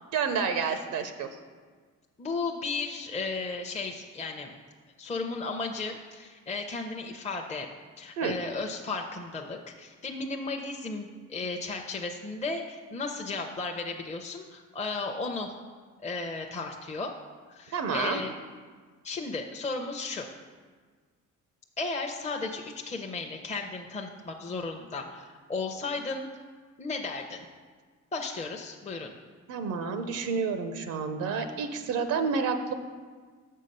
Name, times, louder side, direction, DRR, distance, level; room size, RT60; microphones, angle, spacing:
voice 1, 0.1-1.3 8.2-8.3 17.7-18.2 29.5-32.7, right 5 dB, 85° right, 8 dB, 0.6 m, -29 dB
voice 2, 2.2-4.5 5.0-7.7 8.0-15.5 16.0-17.1 17.5-18.3 19.0-20.3 21.8-26.3 26.8-27.4 28.1-29.1, left 3 dB, 25° left, 2 dB, 0.6 m, -34 dB
6.9 x 5.5 x 5.4 m, 1.5 s
cardioid pair, 90°, 30 cm